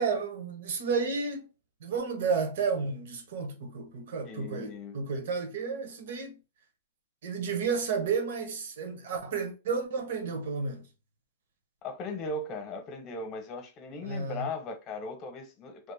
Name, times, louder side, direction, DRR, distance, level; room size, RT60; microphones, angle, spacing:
voice 1, 0.0-1.5 1.8-6.4 7.2-10.9 14.0-14.5, right 5 dB, 65° right, 1.0 m, -32 dB
voice 2, 4.2-5.0 11.8-15.9, left 3 dB, 25° left, 0.9 m, -38 dB
3.3 x 2.0 x 3.4 m
hypercardioid pair, 145°, 0 cm